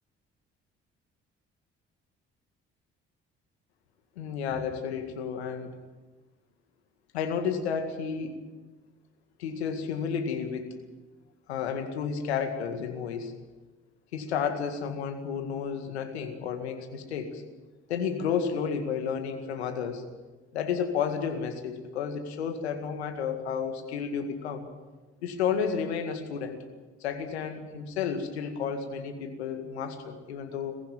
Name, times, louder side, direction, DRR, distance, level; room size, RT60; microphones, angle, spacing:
voice 1, 4.2-5.7 7.1-8.4 9.4-10.7 11.5-13.3 14.1-17.4 17.9-20.0 20.5-24.7 25.2-26.6 27.0-30.8, left 6 dB, 85° left, 6 dB, 2.0 m, -31 dB
22.0 x 15.0 x 9.2 m, 1.2 s
hypercardioid pair, 45°, 32 cm